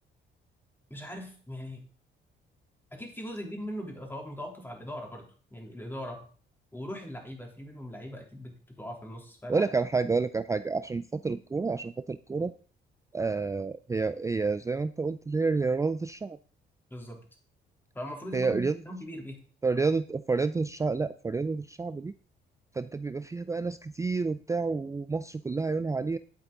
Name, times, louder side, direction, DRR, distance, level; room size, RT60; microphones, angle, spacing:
voice 1, 0.9-1.8 2.9-6.2 6.7-9.6 16.9-17.2 17.9-19.4, equal, 10° left, 1 dB, 3.4 m, -40 dB
voice 2, 9.5-12.5 13.1-16.4 18.3-18.8 19.6-22.1 22.7-26.2, right 4 dB, 15° right, 13 dB, 0.4 m, -29 dB
11.0 x 8.4 x 3.9 m, 0.41 s
cardioid pair, 90°, 20 cm